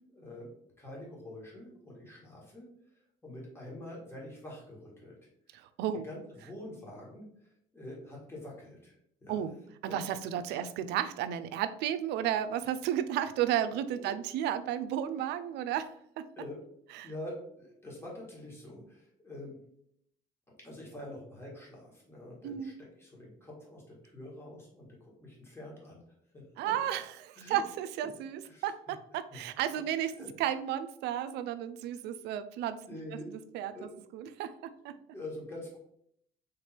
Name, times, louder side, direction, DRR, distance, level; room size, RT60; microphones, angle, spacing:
voice 1, 0.1-0.5 0.8-2.7 3.2-5.2 5.5-5.6 6.0-9.0 9.2-9.4 9.9-10.0 10.5-10.7 13.9-14.1 16.4-16.6 17.0-19.6 20.6-26.7 27.4-27.6 28.4-28.7 29.3-29.4 29.7-29.8 30.2-30.3 32.8-33.3 33.7-33.9 35.1-35.8, left 1 dB, 15° left, -3 dB, 1.6 m, -46 dB
voice 2, 5.5-6.0 9.3-9.6 9.8-15.9 16.2-16.3 16.9-17.1 22.4-22.8 26.6-30.1 30.4-32.8 33.5-35.0, right 10 dB, 80° right, 12 dB, 0.4 m, -33 dB
3.6 x 3.3 x 4.3 m, 0.71 s
cardioid pair, 110°, 17 cm